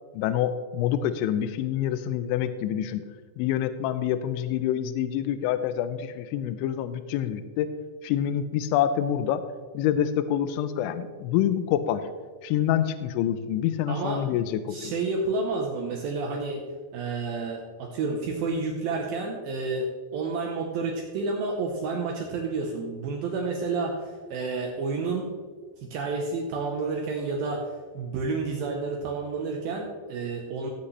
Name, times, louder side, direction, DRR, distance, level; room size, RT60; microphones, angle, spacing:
voice 1, 0.1-3.0 3.4-7.7 8.0-9.4 9.7-12.1 12.4-14.9, left 10 dB, 85° left, 11 dB, 2.8 m, -26 dB
voice 2, 13.9-14.2 14.7-16.6 16.9-25.3 25.8-30.7, right 3 dB, 85° right, 1 dB, 2.0 m, -30 dB
16.5 x 8.4 x 3.2 m, 1.5 s
omnidirectional pair, 5.5 m